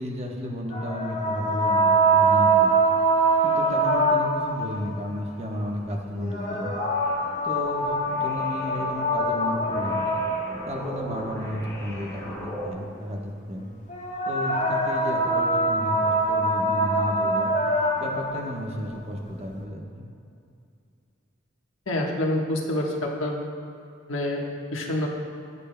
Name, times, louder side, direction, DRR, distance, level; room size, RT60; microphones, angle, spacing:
voice 1, 0.0-2.7 3.4-6.7 7.4-10.0 10.7-13.7 14.3-17.5 18.0-20.1, equal, 30° right, 0 dB, 1.1 m, -33 dB
sound 1, 0.7-4.7 6.2-10.7 13.9-18.3, right 2 dB, 35° left, 1.2 m, -23 dB
sound 2, 6.9-12.7, equal, 15° left, 1.6 m, -39 dB
voice 2, 21.9-23.4 24.1-24.4 24.7-25.1, left 1 dB, 75° left, 0 dB, 1.3 m, -27 dB
19.0 x 8.1 x 2.2 m, 2.5 s
head